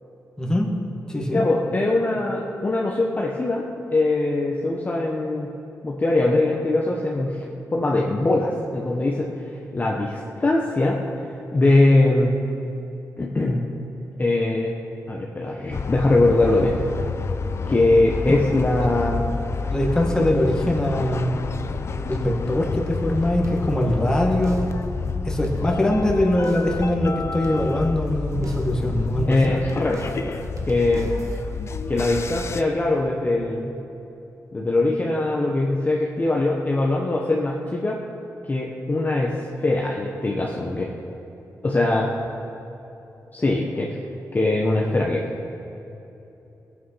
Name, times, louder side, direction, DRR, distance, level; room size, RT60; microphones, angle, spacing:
voice 1, 0.4-0.7 1.1-1.4 18.8-18.9 19.7-21.3 22.1-24.7 25.2-29.4, left 1 dB, 10° left, 0 dB, 1.9 m, -22 dB
voice 2, 1.3-5.5 5.8-7.4 7.7-9.3 9.7-11.0 11.5-12.4 13.2-13.6 14.2-14.7 15.1-16.8 17.7-19.2 29.3-31.1 31.9-33.7 34.5-38.0 38.5-39.4 39.6-40.9 41.6-42.1 43.3-44.0 44.3-45.2, left 2 dB, 30° left, -2 dB, 1.2 m, -21 dB
sound 1, 15.7-32.6, left 4 dB, 50° left, 0.6 m, -29 dB
sound 2, 23.4-24.1 24.4-24.9 25.3-26.1 26.4-26.9 27.4-28.1 28.4-28.9 29.4-31.4, right 2 dB, 55° right, 1.3 m, -40 dB
19.0 x 8.4 x 5.8 m, 3.0 s
wide cardioid pair, 105°, 6 cm